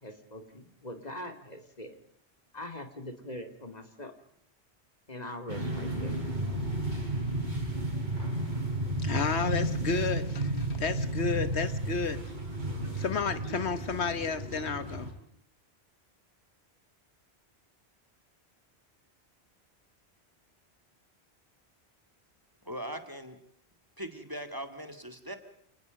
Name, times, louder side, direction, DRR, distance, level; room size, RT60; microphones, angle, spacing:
voice 1, 0.0-2.0 2.5-4.1 5.1-6.2, left 1 dB, 40° left, 6 dB, 2.8 m, -42 dB
sound 1, 5.5-15.1, right 1 dB, 45° right, 4.9 m, -32 dB
voice 2, 9.0-12.2 13.0-15.1, left 5 dB, 85° left, 12 dB, 1.5 m, -31 dB
voice 3, 22.7-23.4 24.0-25.4, right 1 dB, 20° right, 7 dB, 2.3 m, -40 dB
30.0 x 19.0 x 5.3 m, 0.68 s
omnidirectional pair, 1.1 m